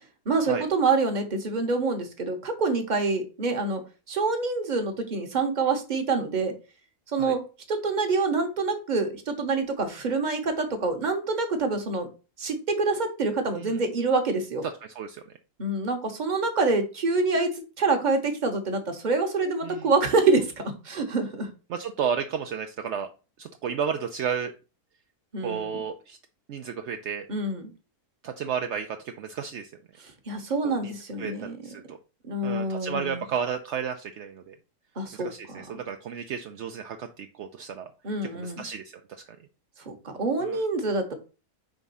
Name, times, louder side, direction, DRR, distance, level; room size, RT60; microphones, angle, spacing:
voice 1, 0.3-6.5 7.1-7.4 7.7-12.1 12.4-14.6 15.6-21.5 25.3-25.8 27.3-27.7 30.3-31.6 32.3-33.2 35.0-35.6 38.0-38.6 39.9-41.1, right 3 dB, 35° right, 5 dB, 1.1 m, -26 dB
voice 2, 14.8-15.2 19.6-19.9 21.7-23.1 23.4-24.5 25.4-26.2 26.5-27.3 28.2-29.7 30.6-32.0 32.4-34.6 35.1-37.9 38.3-39.2 40.4-40.6, right 7 dB, 65° right, 6 dB, 0.7 m, -33 dB
5.1 x 3.6 x 5.4 m, 0.33 s
omnidirectional pair, 1.7 m